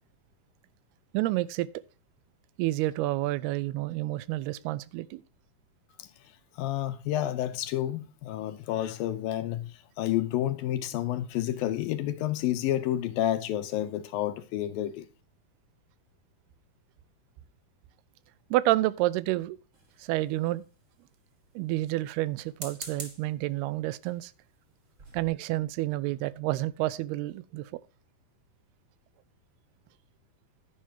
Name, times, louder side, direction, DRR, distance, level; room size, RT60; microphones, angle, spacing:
voice 1, 1.1-1.7 2.6-5.2 18.5-19.6 20.0-20.6 21.6-24.3 25.1-27.8, right 17 dB, 90° right, 2.6 m, -29 dB
voice 2, 6.5-15.1, left 12 dB, 75° left, 2.4 m, -30 dB
sound 1, 19.7-20.5 22.4-23.3 24.0-24.3 24.7-24.8 25.0-25.3, right 3 dB, 45° right, 1.0 m, -43 dB
11.0 x 10.0 x 2.8 m
omnidirectional pair, 4.5 m